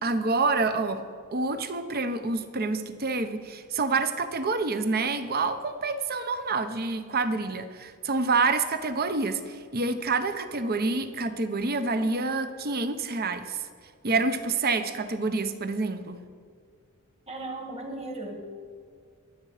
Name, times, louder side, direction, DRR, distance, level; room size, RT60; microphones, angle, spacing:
voice 1, 0.0-1.0 1.3-13.6 14.0-16.2, right 3 dB, 45° right, 9 dB, 0.9 m, -27 dB
voice 2, 17.3-18.5, right 2 dB, 30° right, 2 dB, 2.0 m, -36 dB
23.0 x 7.9 x 5.0 m, 2.1 s
head